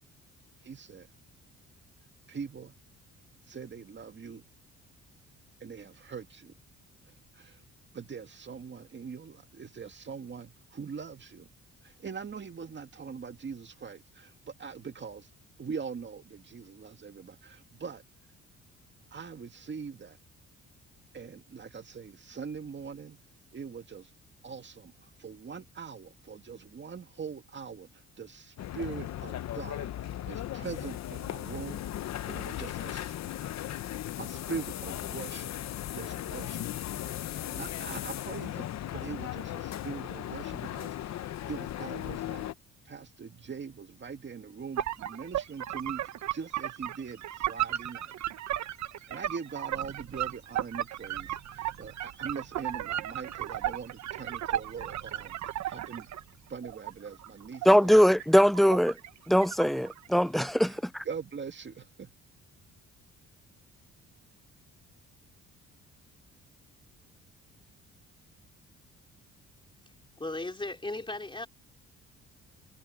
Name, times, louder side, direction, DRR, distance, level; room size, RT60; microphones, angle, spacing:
voice 1, 0.6-1.1 2.3-2.7 3.4-4.5 5.6-6.6 7.1-7.6 7.9-11.5 11.8-15.3 15.6-18.0 19.1-20.2 21.1-23.2 23.5-24.1 24.4-31.9 32.3-33.1 34.2-35.6 35.9-36.7 37.5-42.5 42.9-48.1 49.1-56.1 56.5-58.0 60.6-62.1, right 6 dB, 40° right, 2.1 m, -42 dB
sound 1, 28.6-42.5, left 12 dB, 60° left, 0.8 m, -37 dB
sound 2, 44.8-56.2 56.6-59.2 59.4-60.2, right 12 dB, 70° right, 1.2 m, -35 dB
voice 2, 57.7-59.0 59.3-61.0, equal, ahead, 0.3 m, -22 dB
voice 3, 70.2-71.5, left 2 dB, 15° left, 3.6 m, -36 dB
cardioid pair, 90°, 30 cm